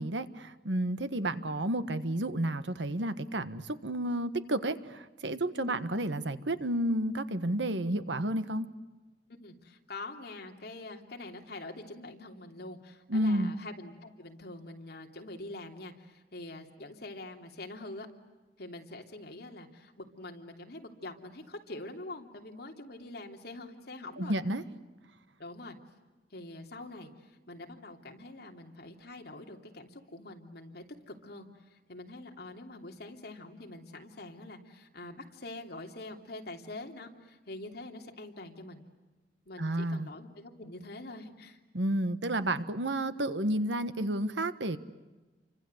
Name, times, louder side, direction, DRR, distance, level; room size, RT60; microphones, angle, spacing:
voice 1, 0.0-8.7 13.1-13.5 24.2-24.6 39.6-40.1 41.7-44.8, right 1 dB, 85° right, 11 dB, 1.4 m, -31 dB
voice 2, 9.4-18.1 18.6-24.4 25.4-25.8 26.3-38.8 39.5-41.6, left 2 dB, 60° left, 2 dB, 3.1 m, -45 dB
30.0 x 25.0 x 8.0 m, 1.2 s
head